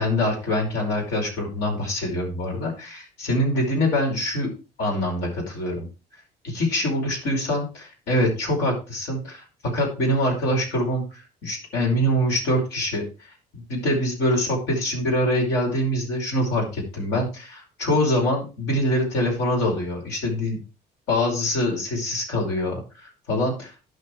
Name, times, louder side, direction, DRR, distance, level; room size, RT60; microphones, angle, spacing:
voice 1, 0.0-4.5 4.8-5.9 6.4-13.0 13.5-20.6 21.1-23.7, left 1 dB, 85° left, 0 dB, 5.3 m, -24 dB
10.5 x 6.2 x 4.6 m, 0.31 s
cardioid pair, 110°, 17 cm